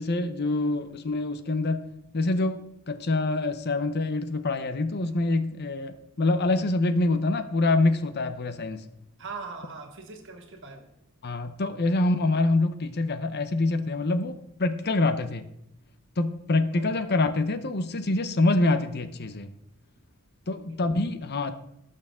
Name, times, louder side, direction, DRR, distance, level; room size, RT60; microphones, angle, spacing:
voice 1, 0.0-1.9 2.1-8.8 11.2-15.4 16.2-19.5 20.5-21.6, left 2 dB, 50° left, 10 dB, 0.8 m, -26 dB
voice 2, 9.2-10.9 16.7-16.9 20.7-20.9, right 4 dB, 60° right, 5 dB, 1.9 m, -41 dB
17.5 x 6.7 x 3.7 m, 0.82 s
head